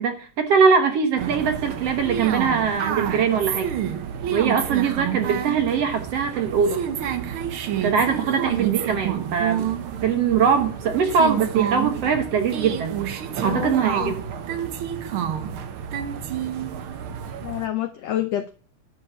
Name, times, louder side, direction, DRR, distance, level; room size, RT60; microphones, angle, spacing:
voice 1, 0.0-3.7 4.3-6.9 7.8-9.7 10.0-12.9 13.4-14.2, right 6 dB, 60° right, 5 dB, 1.9 m, -22 dB
sound 1, 1.2-17.7, right 9 dB, 90° right, 1.1 m, -29 dB
voice 2, 13.4-14.1 17.4-18.5, left 12 dB, 85° left, 7 dB, 1.4 m, -28 dB
11.5 x 4.9 x 8.1 m, 0.41 s
omnidirectional pair, 3.9 m